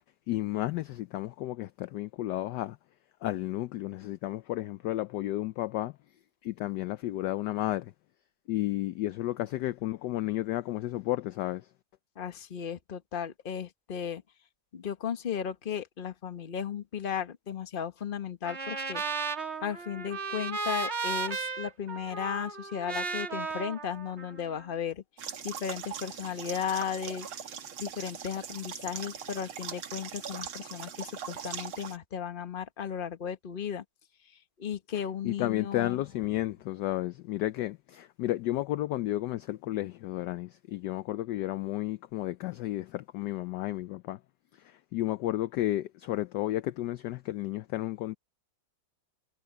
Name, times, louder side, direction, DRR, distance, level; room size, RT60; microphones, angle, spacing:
voice 1, 0.3-2.8 3.2-5.9 6.4-7.9 8.5-11.7 35.2-44.2 44.6-48.2, left 15 dB, 75° left, 1.0 m, -32 dB
voice 2, 12.2-14.2 14.7-19.0 19.6-25.0 25.4-27.3 27.8-33.8 34.6-36.0, left 8 dB, 30° left, 1.1 m, -35 dB
Trumpet, 18.5-24.7, right 4 dB, 35° right, 2.0 m, -35 dB
sound 1, 25.2-32.0, right 8 dB, 90° right, 2.5 m, -41 dB
omnidirectional pair, 2.2 m